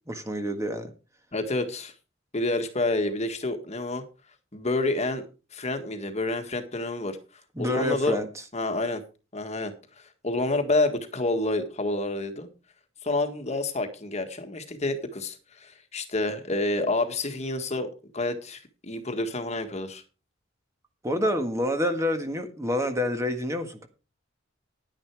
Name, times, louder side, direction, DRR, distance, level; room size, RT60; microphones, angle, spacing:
voice 1, 0.1-0.9 7.5-8.3 21.0-23.9, left 1 dB, 15° right, 6 dB, 1.6 m, -27 dB
voice 2, 1.3-1.9 2.3-4.0 4.5-5.3 5.5-7.2 7.6-8.2 8.5-9.0 9.3-12.5 13.0-20.0, left 2 dB, 35° left, 7 dB, 1.6 m, -28 dB
10.5 x 10.0 x 4.7 m, 0.32 s
head